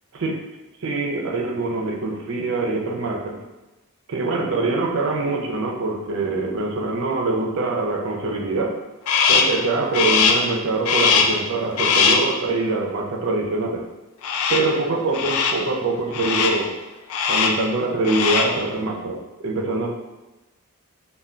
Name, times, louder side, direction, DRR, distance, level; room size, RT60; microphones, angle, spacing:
voice 1, 0.8-3.4 4.1-8.8 9.3-13.8 14.5-16.7 17.3-20.0, right 3 dB, 65° right, 1 dB, 0.4 m, -24 dB
Crow, 9.1-9.6 9.9-10.5 10.8-11.4 11.8-12.3 14.2-14.8 15.1-15.7 16.1-16.7 17.1-17.7 18.0-18.6, left 5 dB, 80° left, 0.3 m, -20 dB
2.2 x 2.2 x 3.6 m, 1.1 s
head